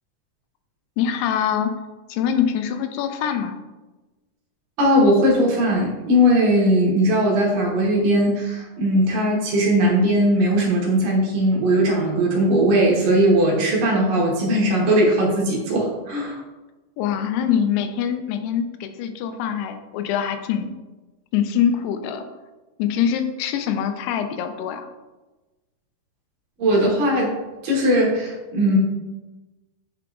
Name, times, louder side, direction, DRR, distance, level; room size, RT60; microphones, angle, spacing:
voice 1, 1.0-1.7 2.1-3.6 17.0-20.7 21.3-22.3 22.8-24.9, left 8 dB, 90° left, 8 dB, 2.6 m, -24 dB
voice 2, 4.8-16.4 26.6-27.3 27.6-28.8, equal, 70° right, -3 dB, 2.5 m, -19 dB
8.8 x 4.6 x 2.4 m, 1.1 s
omnidirectional pair, 4.6 m